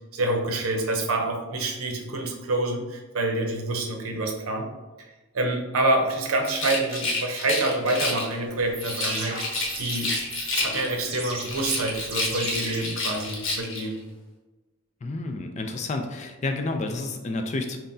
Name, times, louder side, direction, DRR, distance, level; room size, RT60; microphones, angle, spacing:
voice 1, 0.1-4.7 5.0-5.1 5.3-10.1 10.5-14.0, right 2 dB, 85° right, 2 dB, 0.7 m, -27 dB
Rattle, 6.4-8.3 8.8-11.1 11.4-13.9, left 2 dB, 65° left, 0.8 m, -30 dB
sound 1, 8.6-13.6, right 2 dB, 25° right, 0.7 m, -37 dB
voice 2, 15.0-17.8, left 2 dB, 35° left, 5 dB, 0.3 m, -30 dB
5.6 x 2.1 x 2.6 m, 1.1 s
head